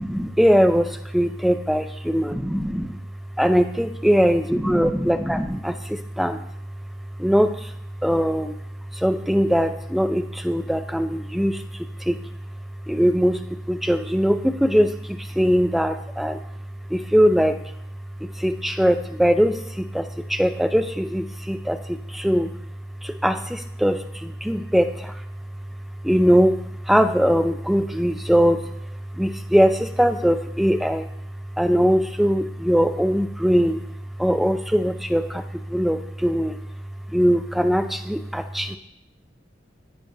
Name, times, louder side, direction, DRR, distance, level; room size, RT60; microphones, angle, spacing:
voice 1, 0.0-3.0 3.4-6.4 7.2-7.7 8.0-8.5 8.9-12.2 12.9-13.4 13.7-16.4 16.9-17.6 18.2-22.5 23.0-25.2 26.0-26.6 26.9-28.7 29.1-31.1 31.6-33.8 34.2-36.6 37.1-38.8, equal, ahead, 8 dB, 0.3 m, -21 dB
10.0 x 8.4 x 2.7 m, 0.78 s
head